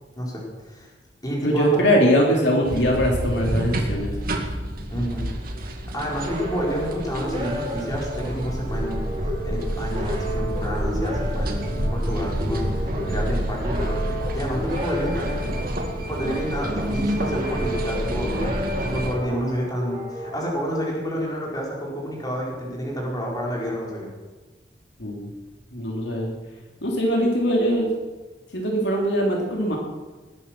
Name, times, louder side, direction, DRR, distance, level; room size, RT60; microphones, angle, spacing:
voice 1, 0.2-0.9 1.2-2.1 4.9-5.3 5.9-15.5 16.1-24.1, equal, 20° left, -3 dB, 4.5 m, -29 dB
voice 2, 1.4-4.1 25.0-25.3 25.7-26.3 26.8-27.9 28.5-29.8, equal, 75° left, -1 dB, 3.1 m, -21 dB
sound 1, 2.6-19.1, equal, 55° right, 2.2 m, -28 dB
sound 2, 5.9-21.3, equal, 35° right, 4.1 m, -33 dB
20.0 x 10.0 x 6.0 m, 1.3 s
head